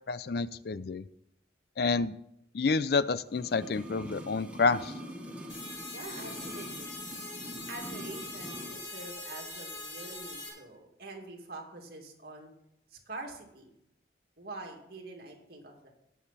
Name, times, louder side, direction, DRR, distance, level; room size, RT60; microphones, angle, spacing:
voice 1, 0.1-1.0 1.8-2.2 2.5-4.9, left 4 dB, 55° left, 16 dB, 0.4 m, -29 dB
sound 1, 3.3-8.8 9.0-9.1, equal, 5° right, 1.3 m, -44 dB
sound 2, 5.5-10.5, left 2 dB, 20° left, 5.9 m, -42 dB
voice 2, 5.9-7.0 7.7-12.5 12.9-13.7 14.4-15.9, right 2 dB, 55° right, 1 dB, 2.4 m, -45 dB
19.0 x 7.1 x 4.2 m, 0.80 s
head